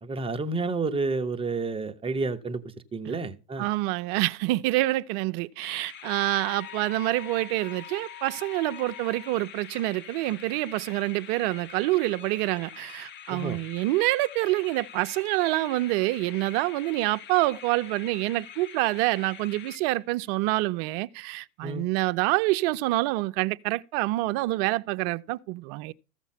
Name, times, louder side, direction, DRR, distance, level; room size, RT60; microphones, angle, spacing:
voice 1, 0.0-2.6 2.9-3.7 13.3-13.6 21.6-21.9, right 3 dB, 10° right, 0.8 m, -30 dB
voice 2, 3.6-25.9, right 19 dB, 40° right, 0.5 m, -27 dB
sound 1, 5.6-20.3, left 9 dB, 25° left, 0.7 m, -46 dB
sound 2, 6.0-9.3, left 11 dB, 55° left, 3.4 m, -45 dB
14.5 x 7.1 x 4.2 m
hypercardioid pair, 115°, 47 cm